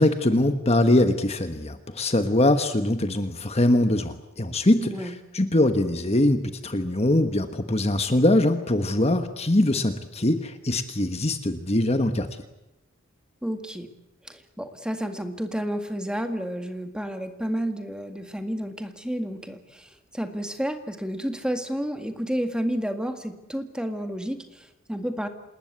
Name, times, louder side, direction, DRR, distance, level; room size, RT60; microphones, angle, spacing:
voice 1, 0.0-12.3, left 1 dB, 30° left, 8 dB, 1.4 m, -22 dB
voice 2, 4.8-5.2 13.4-13.9 14.2-25.3, equal, 5° right, 6 dB, 1.9 m, -31 dB
27.5 x 20.5 x 8.3 m, 0.89 s
head